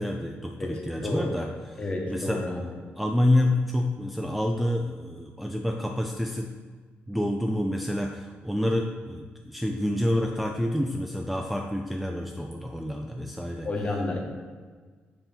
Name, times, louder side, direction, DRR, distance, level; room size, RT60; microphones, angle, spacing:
voice 1, 0.0-2.5 3.0-6.5 7.1-13.7, left 1 dB, ahead, 2 dB, 0.4 m, -28 dB
voice 2, 0.6-1.3 1.8-2.7 13.6-14.2, left 2 dB, 30° left, 0 dB, 1.3 m, -31 dB
7.0 x 3.0 x 5.2 m, 1.5 s
cardioid pair, 90°, 4 cm